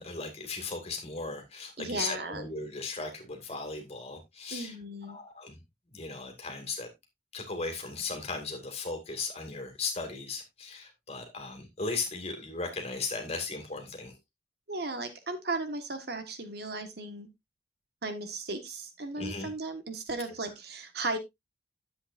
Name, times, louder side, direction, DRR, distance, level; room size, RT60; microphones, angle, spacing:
voice 1, 0.0-4.7 5.1-5.6 5.9-6.9 7.3-14.1 19.1-19.5, left 4 dB, 35° left, 2.3 m, -37 dB
voice 2, 1.8-2.5 4.5-5.2 14.7-17.3 18.0-21.2, right 2 dB, 60° right, 1.4 m, -36 dB
10.0 x 7.9 x 2.5 m
head